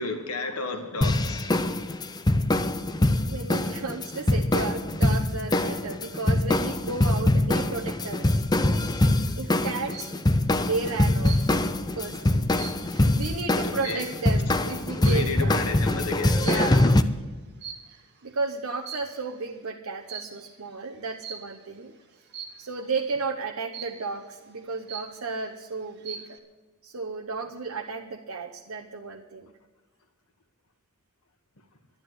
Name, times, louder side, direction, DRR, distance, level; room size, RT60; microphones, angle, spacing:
voice 1, 0.0-1.6 13.6-14.0 15.0-16.8, left 3 dB, 90° left, 6 dB, 1.5 m, -32 dB
sound 1, 1.0-17.0, left 1 dB, 20° left, 0.6 m, -24 dB
voice 2, 2.9-8.4 9.4-10.1 10.6-11.6 11.9-12.5 12.9-15.5 16.3-17.0 17.9-22.0 22.6-26.4 26.8-29.5, right 4 dB, 70° right, 1 dB, 0.9 m, -33 dB
sound 2, 9.6-10.2 11.2-11.8 12.2-14.4 15.0-15.4 16.4-16.8 17.6-18.2 18.7-19.4 20.1-20.4 21.2-21.6 22.3-22.7 23.7-24.2 24.6-24.7 24.9-25.5 25.9-26.4, right 7 dB, 50° right, 1.8 m, -41 dB
12.0 x 10.5 x 8.0 m, 1.3 s
head